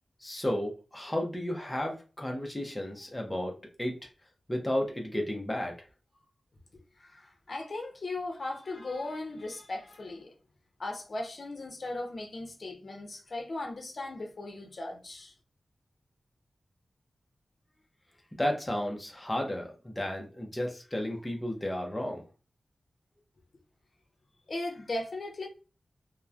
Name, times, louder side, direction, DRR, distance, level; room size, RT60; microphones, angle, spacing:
voice 1, 0.2-4.0 4.5-5.7 18.4-22.2, left 1 dB, 15° left, 0.6 m, -33 dB
voice 2, 7.0-10.3 10.8-15.3 24.5-25.5, left 2 dB, 55° left, 0.7 m, -37 dB
2.9 x 2.1 x 2.4 m
wide cardioid pair, 100°, 0 cm